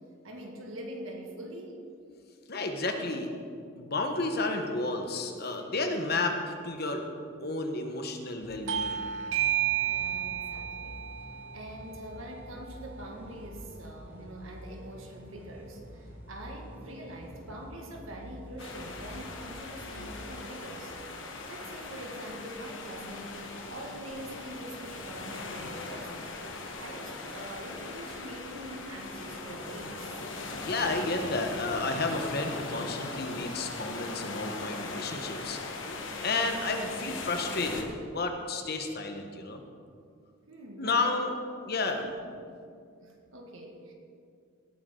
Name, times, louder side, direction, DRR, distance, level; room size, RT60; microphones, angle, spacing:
voice 1, 0.2-1.7 9.8-11.1 11.5-20.9 21.5-23.4 23.7-26.3 26.8-30.2 40.5-41.3 41.8-42.1 43.0-43.9, right 1 dB, 80° right, 1 dB, 2.0 m, -44 dB
voice 2, 2.5-3.3 3.8-7.0 7.4-9.0 20.0-20.1 30.7-35.6 35.9-39.6 40.8-41.3 41.6-42.0, left 3 dB, 50° left, 4 dB, 1.2 m, -31 dB
sound 1, 8.4-21.7, equal, 10° right, 1.6 m, -48 dB
Bell / Doorbell, 8.7-13.8, right 10 dB, 65° right, 0.5 m, -33 dB
sound 2, 18.6-37.8, left 3 dB, 65° left, 1.4 m, -40 dB
17.5 x 9.3 x 3.9 m, 2.3 s
head